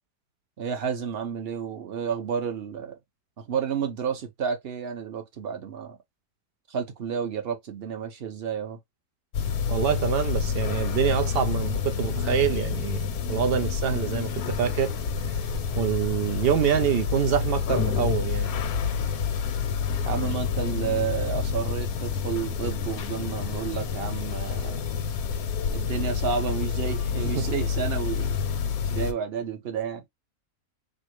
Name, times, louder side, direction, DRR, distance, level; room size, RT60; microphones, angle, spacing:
voice 1, 0.6-3.0 3.4-6.0 6.7-8.8 20.0-24.8 25.7-28.4 28.9-30.0, right 7 dB, 50° right, 0.9 m, -31 dB
sound 1, 9.3-29.1, left 6 dB, 75° left, 1.1 m, -28 dB
voice 2, 9.7-14.9 15.7-18.5 27.3-27.5, right 8 dB, 70° right, 0.5 m, -26 dB
4.3 x 2.1 x 3.0 m
omnidirectional pair, 1.6 m